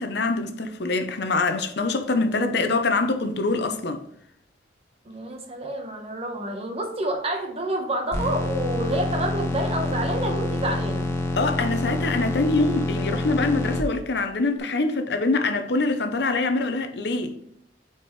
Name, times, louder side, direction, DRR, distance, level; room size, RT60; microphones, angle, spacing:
voice 1, 0.0-4.0 11.4-17.3, left 3 dB, 65° left, 0.7 m, -24 dB
voice 2, 5.0-11.1, right 1 dB, 35° right, 1.2 m, -28 dB
sound 1, 8.1-13.8, left 1 dB, 15° left, 1.1 m, -27 dB
8.4 x 4.4 x 3.2 m
head